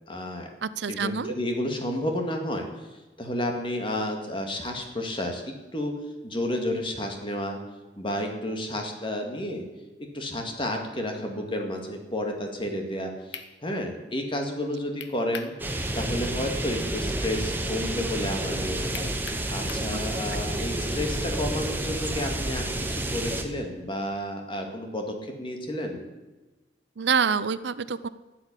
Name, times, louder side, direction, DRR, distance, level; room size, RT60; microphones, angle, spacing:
voice 1, 0.1-0.5 0.9-2.9 3.2-5.9 6.2-7.6 8.0-9.6 10.0-15.5 15.9-19.1 19.5-26.1, left 1 dB, 30° left, 3 dB, 2.1 m, -31 dB
voice 2, 0.6-1.4 27.0-28.1, right 6 dB, 75° right, 16 dB, 0.6 m, -26 dB
sound 1, 13.3-13.5 15.0-15.6 15.9-16.0 18.9-19.9, left 7 dB, 90° left, 1.1 m, -39 dB
sound 2, 15.6-23.4, right 1 dB, 10° right, 1.3 m, -30 dB
12.0 x 7.7 x 9.9 m, 1.2 s
head